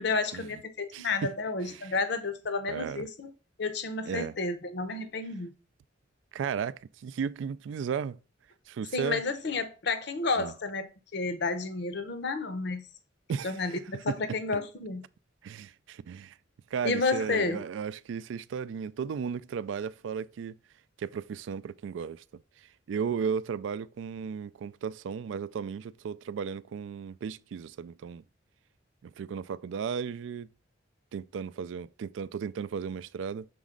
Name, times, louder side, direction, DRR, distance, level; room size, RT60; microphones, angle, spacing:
voice 1, 0.0-3.3 3.6-5.5 8.9-10.9 11.1-12.9 13.4-15.0 16.8-17.6, left 3 dB, 65° left, 0.7 m, -31 dB
voice 2, 0.9-1.3 1.6-1.9 2.7-3.1 4.1-4.3 6.3-8.2 8.7-9.2 10.4-10.5 13.3-13.8 14.1-14.2 15.4-16.4 16.7-20.6 21.0-22.2 22.6-28.2 29.0-30.5 31.1-33.5, right 6 dB, 75° right, 0.3 m, -35 dB
6.1 x 4.1 x 3.7 m
head